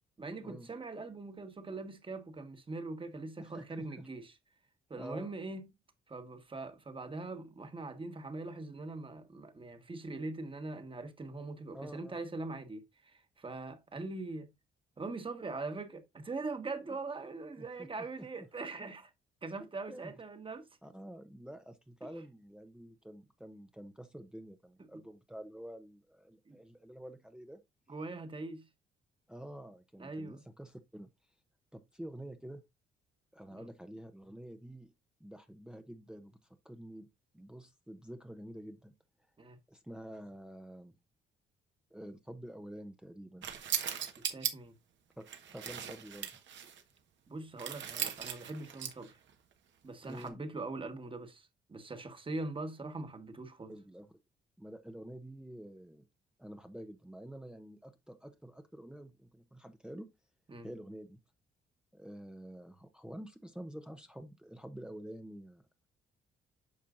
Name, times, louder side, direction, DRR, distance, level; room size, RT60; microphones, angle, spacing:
voice 1, 0.2-4.3 4.9-5.7 6.1-14.5 15.0-19.1 19.4-20.7 26.5-26.6 27.9-28.7 30.0-30.4 33.5-33.7 39.4-39.6 44.2-44.7 47.3-49.2 49.8-53.7 60.5-60.7, right 3 dB, 25° right, 1.4 m, -42 dB
voice 2, 3.4-4.1 4.9-5.3 11.7-12.2 17.6-17.9 18.2-18.5 19.9-20.1 20.8-27.6 29.3-31.1 31.7-32.6 33.3-34.9 35.2-37.1 37.3-38.9 39.7-41.0 41.9-43.5 45.2-46.4 50.0-50.4 53.7-54.2 54.6-56.1 56.4-60.1 60.6-61.2 61.9-65.9, right 1 dB, 5° right, 0.7 m, -48 dB
sound 1, 43.4-44.5 45.2-46.8 47.6-49.1 50.0-50.3, right 9 dB, 70° right, 1.3 m, -38 dB
8.6 x 5.6 x 2.5 m
cardioid pair, 90°, 20 cm